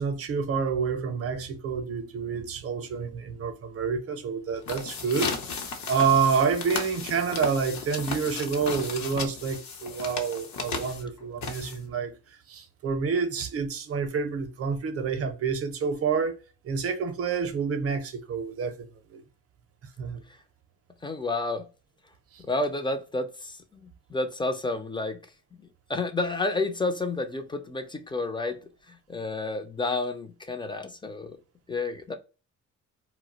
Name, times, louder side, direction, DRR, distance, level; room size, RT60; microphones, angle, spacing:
voice 1, 0.0-5.3 5.9-12.1 12.5-16.4 16.6-19.2 20.0-20.2 22.3-22.4, right 6 dB, 50° right, 0.6 m, -28 dB
sound 1, 4.5-12.1, left 5 dB, 65° left, 0.7 m, -35 dB
voice 2, 21.0-21.7 22.4-25.2 25.6-28.6 28.9-31.4 31.7-32.1, left 2 dB, 15° left, 0.4 m, -30 dB
2.2 x 2.0 x 3.8 m
cardioid pair, 90°, 30 cm